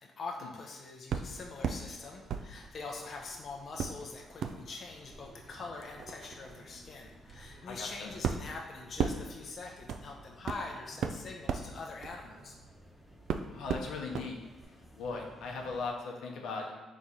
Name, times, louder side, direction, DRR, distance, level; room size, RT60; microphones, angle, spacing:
voice 1, 0.0-12.6, left 3 dB, 50° left, 0 dB, 0.6 m, -44 dB
sound 1, 1.1-1.8 2.3-3.3 3.8-12.9 13.3-14.3 14.6-14.7, right 6 dB, 70° right, 0.3 m, -37 dB
sound 2, 1.3-15.9, equal, ahead, 1.0 m, -56 dB
voice 2, 7.6-8.1 13.5-14.4 14.9-16.9, left 4 dB, 85° left, 0 dB, 0.7 m, -38 dB
4.1 x 3.1 x 3.7 m, 1.1 s
cardioid pair, 90°, 0 cm